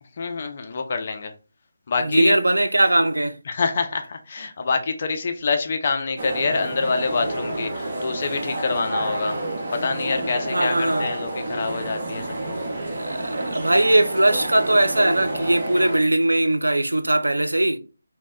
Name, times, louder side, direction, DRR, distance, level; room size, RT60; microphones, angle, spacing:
voice 1, 0.2-1.3 1.9-2.4 3.5-9.4 9.7-12.7 15.8-15.9, left 4 dB, 40° left, 0.4 m, -26 dB
voice 2, 2.1-3.4 10.5-11.1 12.9-17.8, right 1 dB, 80° right, 0.3 m, -20 dB
sound 1, 6.2-16.0, right 1 dB, 45° right, 0.6 m, -29 dB
2.0 x 2.0 x 3.4 m
figure-of-eight pair, 155°, 0 cm